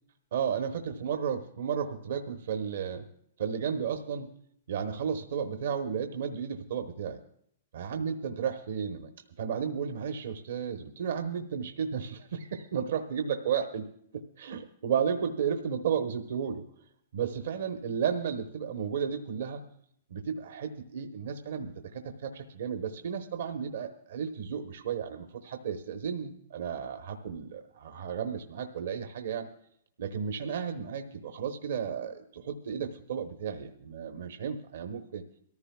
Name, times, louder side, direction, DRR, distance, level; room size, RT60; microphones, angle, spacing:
voice 1, 0.3-3.1 3.4-4.3 4.7-7.2 7.7-9.1 9.4-13.9 14.1-16.6 17.1-19.6 20.1-29.5 30.0-35.2, right 7 dB, 75° right, 6 dB, 1.0 m, -33 dB
22.5 x 14.0 x 2.3 m, 0.68 s
hypercardioid pair, 125°, 0 cm